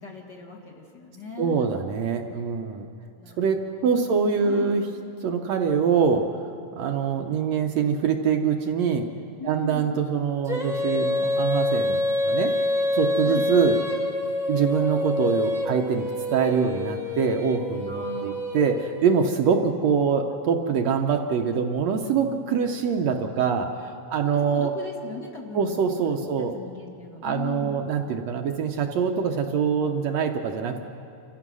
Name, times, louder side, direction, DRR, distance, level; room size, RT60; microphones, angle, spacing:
voice 1, 0.0-1.7 3.2-4.7 9.4-9.9 13.2-13.5 17.9-18.5 24.2-25.8 26.2-27.8, left 4 dB, 40° left, -1 dB, 2.2 m, -38 dB
voice 2, 1.4-2.9 3.4-4.8 5.2-6.4 6.7-9.1 9.5-12.0 12.2-12.5 12.9-13.8 14.5-24.7 25.5-26.5 27.2-30.8, right 6 dB, 70° right, 4 dB, 1.9 m, -24 dB
Female singing, 10.5-19.3, left 1 dB, ahead, 0.8 m, -27 dB
28.0 x 15.0 x 6.2 m, 2.5 s
omnidirectional pair, 3.5 m